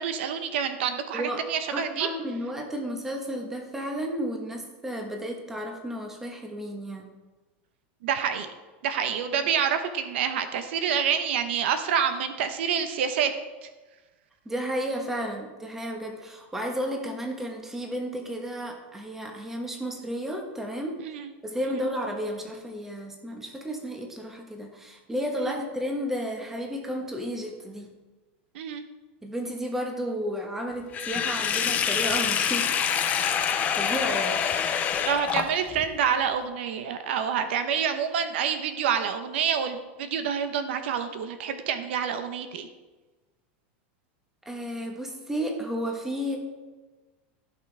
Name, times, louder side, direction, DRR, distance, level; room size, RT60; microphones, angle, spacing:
voice 1, 0.0-2.1 8.0-8.5 8.8-13.3 13.6-13.7 21.0-21.3 21.7-21.8 25.4-25.6 28.5-28.8 35.1-42.7, right 7 dB, 70° right, 9 dB, 0.9 m, -27 dB
voice 2, 1.1-1.4 1.7-7.1 9.4-9.5 14.4-21.0 21.4-27.9 29.2-33.1 33.7-34.4 44.4-46.4, equal, 5° right, 2 dB, 1.2 m, -32 dB
Sink (filling or washing), 30.9-35.8, left 8 dB, 25° left, 0.7 m, -26 dB
15.0 x 6.0 x 3.4 m, 1.2 s
supercardioid pair, 155°, 6 cm